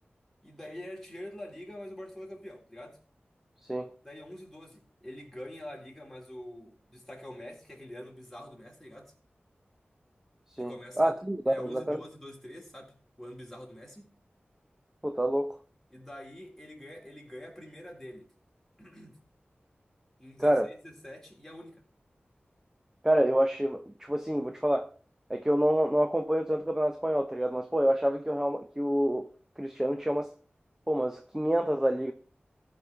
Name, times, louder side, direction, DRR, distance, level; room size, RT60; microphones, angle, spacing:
voice 1, 0.4-3.0 4.0-9.1 10.6-11.2 11.5-14.1 15.9-18.3 18.8-19.2 20.2-21.8, left 1 dB, 5° left, 3.5 m, -45 dB
voice 2, 10.6-12.0 15.0-15.5 20.4-20.7 23.0-24.9 25.3-29.3 29.6-30.3 30.9-32.1, right 1 dB, 10° right, 0.8 m, -27 dB
14.0 x 5.4 x 4.9 m
wide cardioid pair, 60°, 4 cm